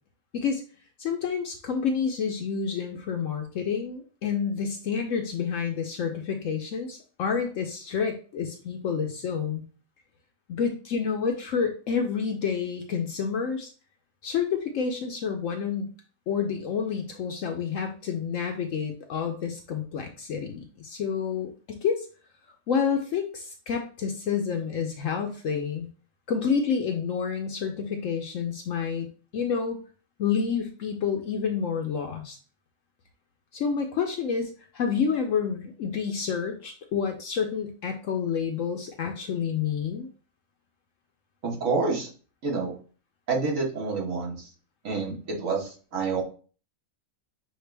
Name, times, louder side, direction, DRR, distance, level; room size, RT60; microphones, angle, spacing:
voice 1, 1.0-9.6 10.5-13.7 14.2-15.9 16.3-22.1 22.7-25.9 26.3-29.1 29.3-29.8 30.2-32.4 33.5-40.1, left 6 dB, 65° left, 3 dB, 0.9 m, -29 dB
voice 2, 41.4-42.1 42.4-42.7 43.3-44.5 44.8-46.2, right 4 dB, 60° right, -2 dB, 1.7 m, -28 dB
6.5 x 2.4 x 3.3 m, 0.39 s
omnidirectional pair, 1.5 m